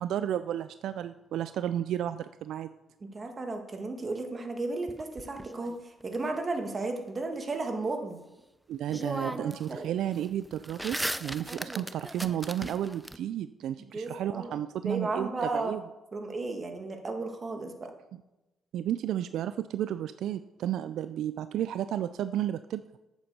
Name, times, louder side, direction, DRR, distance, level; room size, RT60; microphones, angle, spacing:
voice 1, 0.0-2.7 8.7-15.8 18.7-22.8, right 11 dB, 75° right, 13 dB, 0.3 m, -32 dB
voice 2, 3.0-8.2 8.9-9.9 11.5-11.9 13.9-14.5 14.8-15.7 16.1-17.9, right 3 dB, 35° right, 4 dB, 1.7 m, -34 dB
sound 1, 4.9-6.2 8.4-8.5 8.9-9.7 10.0-13.2, right 1 dB, 5° right, 0.5 m, -37 dB
8.7 x 7.2 x 6.6 m, 1.0 s
cardioid pair, 90°, 0 cm